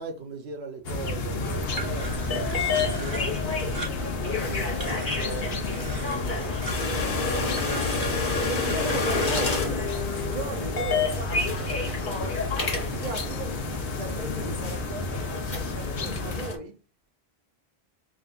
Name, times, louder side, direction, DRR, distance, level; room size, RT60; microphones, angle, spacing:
voice 1, 0.0-7.8 8.5-8.8, right 3 dB, 85° right, 1.1 m, -40 dB
sound 1, 0.8-16.5, left 3 dB, 70° left, 1.0 m, -32 dB
sound 2, 1.5-16.5, left 3 dB, 55° left, 1.2 m, -30 dB
sound 3, 1.7-10.2, right 2 dB, 25° right, 1.2 m, -40 dB
voice 2, 8.4-12.4 12.9-16.8, right 3 dB, 50° right, 0.8 m, -37 dB
6.2 x 2.5 x 2.5 m
omnidirectional pair, 1.1 m